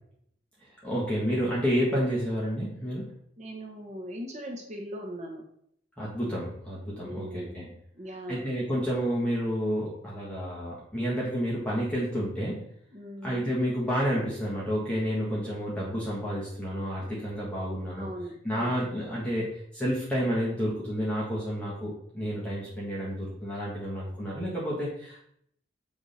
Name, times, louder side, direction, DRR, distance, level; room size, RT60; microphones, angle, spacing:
voice 1, 0.8-3.1 6.0-7.7 8.3-12.7 13.2-18.1 18.4-25.2, equal, 5° left, -7 dB, 1.4 m, -30 dB
voice 2, 3.4-5.4 7.0-8.5 12.9-13.5 18.0-18.8, equal, 40° right, 1 dB, 1.0 m, -40 dB
7.1 x 3.5 x 4.1 m, 0.70 s
head